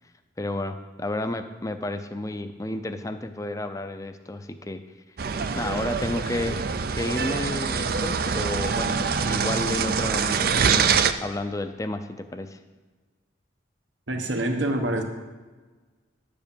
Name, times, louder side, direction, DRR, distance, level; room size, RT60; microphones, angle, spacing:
voice 1, 0.4-4.8 5.6-6.7 7.0-12.6, left 1 dB, 15° left, 8 dB, 0.5 m, -31 dB
sound 1, 5.2-11.1, right 6 dB, 50° right, 0.4 m, -25 dB
voice 2, 14.1-15.0, right 1 dB, 70° right, 5 dB, 1.0 m, -26 dB
10.5 x 5.1 x 7.0 m, 1.3 s
head